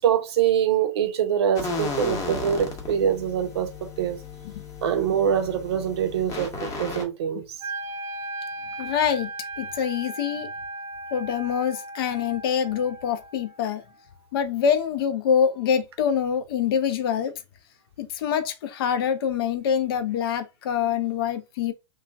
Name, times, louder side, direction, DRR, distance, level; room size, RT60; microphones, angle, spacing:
voice 1, 0.0-3.7 4.0-4.2 4.8-7.4, right 9 dB, 55° right, 0.6 m, -24 dB
sound 1, 1.5-7.0, left 3 dB, 20° left, 0.8 m, -34 dB
Wind instrument woodwind instrument, 7.6-13.7, right 2 dB, 20° right, 0.7 m, -37 dB
voice 2, 8.8-9.3 9.6-10.5 11.1-13.8 14.3-17.3 18.0-21.7, left 8 dB, 50° left, 0.5 m, -25 dB
3.0 x 2.3 x 2.2 m
figure-of-eight pair, 110°, 16 cm